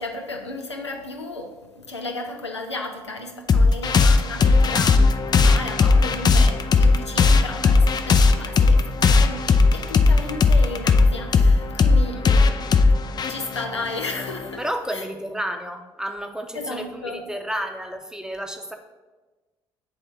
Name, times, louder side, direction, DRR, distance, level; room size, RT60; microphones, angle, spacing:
voice 1, 0.0-5.1 5.4-12.2 13.3-14.7 14.9-15.1 16.5-17.2, left 2 dB, 90° left, 3 dB, 0.5 m, -34 dB
sound 1, 3.5-14.6, left 4 dB, 30° left, 0.4 m, -17 dB
voice 2, 14.6-18.7, equal, 5° right, 5 dB, 0.8 m, -31 dB
7.9 x 3.5 x 4.4 m, 1.2 s
figure-of-eight pair, 50°, 14 cm